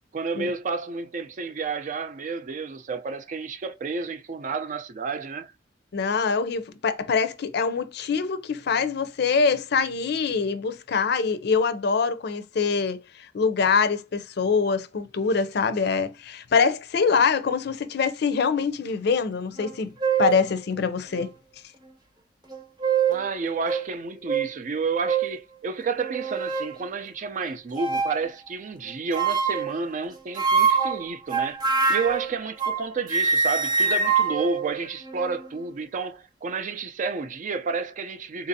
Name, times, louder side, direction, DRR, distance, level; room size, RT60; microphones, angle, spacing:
voice 1, 0.1-5.5 23.1-31.6 31.9-38.5, right 4 dB, 45° right, 0.4 m, -30 dB
voice 2, 5.9-19.9 20.2-21.3, left 5 dB, 60° left, 0.4 m, -24 dB
sound 1, 19.6-19.7 20.0-20.4 21.1-21.2 22.5-23.3 23.7-23.8 24.3-24.5 25.1-25.3 26.0-26.7 27.7-28.2 29.1-29.7 30.4-32.8 33.1-35.4, right 5 dB, 20° right, 0.8 m, -24 dB
3.8 x 2.5 x 2.6 m
head